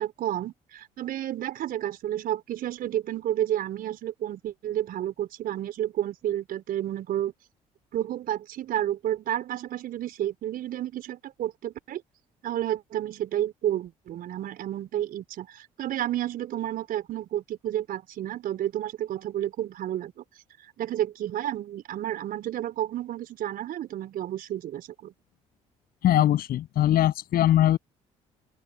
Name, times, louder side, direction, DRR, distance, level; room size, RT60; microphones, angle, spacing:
voice 1, 0.0-7.3 7.9-12.0 12.4-20.2 20.8-25.1, right 12 dB, 55° right, 4.2 m, -31 dB
voice 2, 26.0-27.8, left 12 dB, 60° left, 7.0 m, -21 dB
open air
hypercardioid pair, 50°, 18 cm